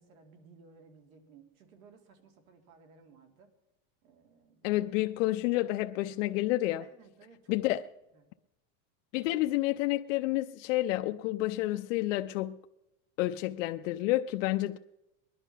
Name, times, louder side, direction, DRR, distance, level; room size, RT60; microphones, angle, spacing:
voice 1, 0.0-3.5 4.0-4.9 6.8-7.8 8.1-8.2, right 5 dB, 90° right, 2.6 m, -58 dB
voice 2, 4.6-6.8 7.5-7.8 9.1-12.6 13.2-14.8, left 16 dB, 65° left, 0.5 m, -29 dB
20.0 x 11.0 x 5.7 m
supercardioid pair, 155°, 41 cm